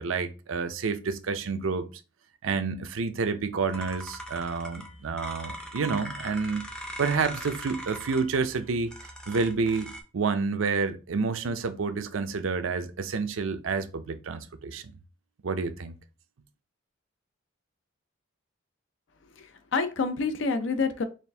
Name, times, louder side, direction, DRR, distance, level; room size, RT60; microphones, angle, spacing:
voice 1, 0.0-1.9 2.4-6.7 7.0-14.9 15.4-15.9, right 4 dB, 75° right, 0.5 m, -29 dB
sound 1, 3.7-10.0, equal, 5° left, 0.5 m, -41 dB
voice 2, 19.4-21.0, left 4 dB, 65° left, 0.5 m, -28 dB
4.2 x 2.5 x 3.3 m
head